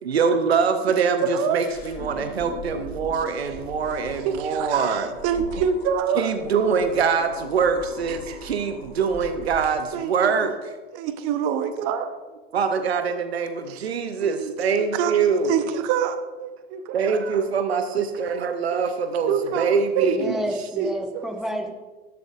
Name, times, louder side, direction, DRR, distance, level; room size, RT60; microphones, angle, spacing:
voice 1, 0.0-5.2 6.2-10.5 12.5-15.5 16.9-20.4, right 6 dB, 80° right, 8 dB, 0.6 m, -24 dB
voice 2, 1.2-1.6 4.2-6.3 8.1-8.4 9.9-10.5 10.9-12.1 13.7-13.8 14.2-14.5 14.8-15.2 15.4-17.2 18.7-18.8 19.3-20.4 20.8-21.3, right 7 dB, 50° right, 10 dB, 0.8 m, -26 dB
sound 1, 1.7-9.7, left 2 dB, 65° left, 1.9 m, -40 dB
voice 3, 20.1-21.7, equal, ahead, 3 dB, 1.0 m, -29 dB
12.0 x 7.8 x 2.4 m, 1.2 s
figure-of-eight pair, 75°, 31 cm